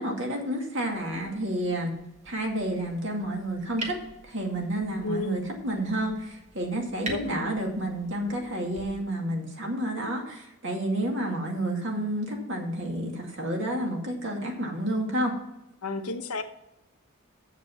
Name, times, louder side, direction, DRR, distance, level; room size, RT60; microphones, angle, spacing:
voice 1, 0.0-1.9 2.3-3.9 4.2-15.3, right 1 dB, 55° right, 1 dB, 2.3 m, -30 dB
sound 1, 0.8-8.8, right 2 dB, 30° right, 1.5 m, -45 dB
voice 2, 5.0-5.4 7.0-7.6 15.8-16.4, left 2 dB, 85° left, 6 dB, 1.1 m, -32 dB
7.5 x 7.3 x 7.3 m, 0.92 s
head